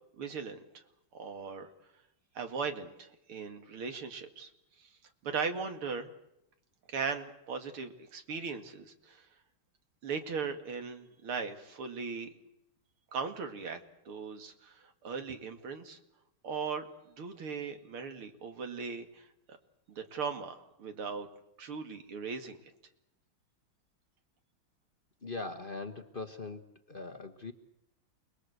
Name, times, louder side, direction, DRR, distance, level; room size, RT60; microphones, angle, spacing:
voice 1, 0.2-0.6 1.1-1.7 2.3-4.5 4.8-4.9 5.2-6.1 6.9-9.3 10.0-12.3 13.1-13.8 14.1-16.0 16.4-16.9 17.2-19.3 19.9-21.3 21.6-22.6, right 5 dB, 85° right, 7 dB, 3.0 m, -38 dB
voice 2, 25.2-27.5, left 3 dB, 30° left, 5 dB, 1.2 m, -41 dB
28.5 x 21.0 x 8.1 m, 0.83 s
omnidirectional pair, 2.3 m